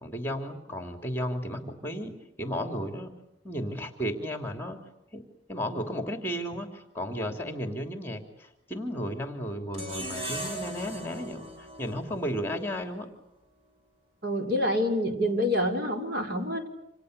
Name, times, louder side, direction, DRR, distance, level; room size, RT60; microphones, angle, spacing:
voice 1, 0.0-3.1 3.4-4.8 5.1-5.2 5.5-13.1, equal, 10° left, 5 dB, 3.0 m, -34 dB
sound 1, 9.7-12.9, right 1 dB, 30° right, 6.5 m, -38 dB
voice 2, 14.2-16.7, left 1 dB, 55° right, 3 dB, 5.3 m, -27 dB
29.5 x 27.5 x 6.7 m, 0.86 s
head